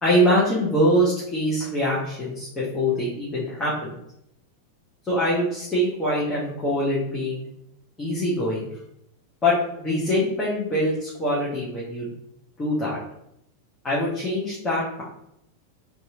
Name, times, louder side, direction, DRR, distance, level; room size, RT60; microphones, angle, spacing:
voice 1, 0.0-4.0 5.1-7.5 8.0-8.7 9.4-12.1 12.6-13.0 13.8-15.0, equal, 20° left, -7 dB, 0.9 m, -24 dB
2.8 x 2.4 x 2.7 m, 0.77 s
figure-of-eight pair, 90°, 0 cm